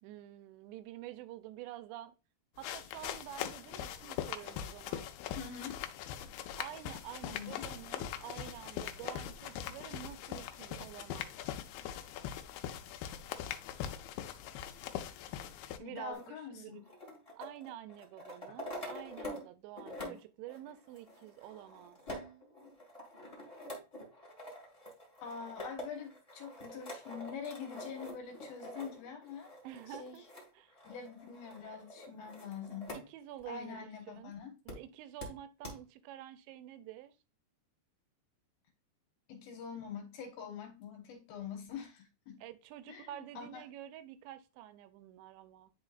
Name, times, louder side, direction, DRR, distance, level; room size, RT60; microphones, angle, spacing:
voice 1, 0.0-2.1 2.6-5.1 6.6-11.3 15.8-16.8 17.4-22.0 29.6-30.2 30.5-30.7 32.9-34.3 34.7-37.1 42.4-45.7, right 12 dB, 85° right, 2.8 m, -48 dB
sound 1, 2.6-15.8, left 10 dB, 90° left, 2.2 m, -41 dB
voice 2, 5.4-5.8 7.2-7.6 15.8-16.9 18.5-18.6 25.2-29.5 29.9-30.2 30.8-32.9 33.5-34.5 39.3-42.4 42.9-43.1 43.4-43.6, left 7 dB, 70° left, 2.6 m, -45 dB
sound 2, 16.1-19.5 19.8-33.1 33.4-33.5 34.7-34.8 35.2-35.3 35.6-35.7, left 1 dB, 45° left, 0.4 m, -47 dB
10.5 x 3.8 x 2.4 m
omnidirectional pair, 5.1 m